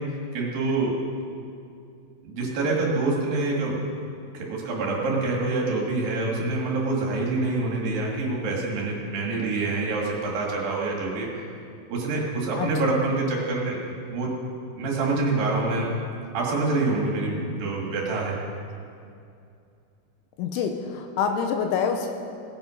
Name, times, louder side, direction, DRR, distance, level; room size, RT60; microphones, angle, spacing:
voice 1, 0.3-0.9 2.2-3.8 4.3-11.3 11.9-13.8 14.1-14.3 14.8-15.9 16.3-18.4, right 3 dB, 55° right, -2 dB, 3.0 m, -26 dB
voice 2, 20.4-22.1, left 6 dB, 80° left, 5 dB, 3.0 m, -26 dB
18.0 x 9.4 x 5.0 m, 2.5 s
omnidirectional pair, 5.9 m